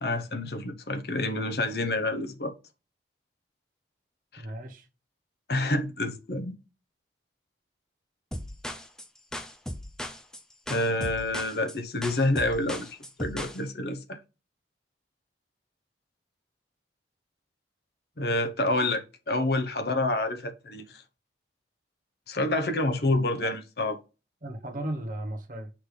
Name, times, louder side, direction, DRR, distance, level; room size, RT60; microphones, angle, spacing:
voice 1, 0.0-2.5 4.3-4.4 5.5-6.5 10.7-14.2 18.2-21.0 22.3-24.0, left 2 dB, 60° left, 0.9 m, -28 dB
voice 2, 4.4-4.9 23.1-23.5 24.4-25.7, right 1 dB, 45° right, 1.0 m, -36 dB
sound 1, 8.3-13.6, left 1 dB, 5° left, 0.5 m, -37 dB
6.1 x 3.3 x 4.9 m
head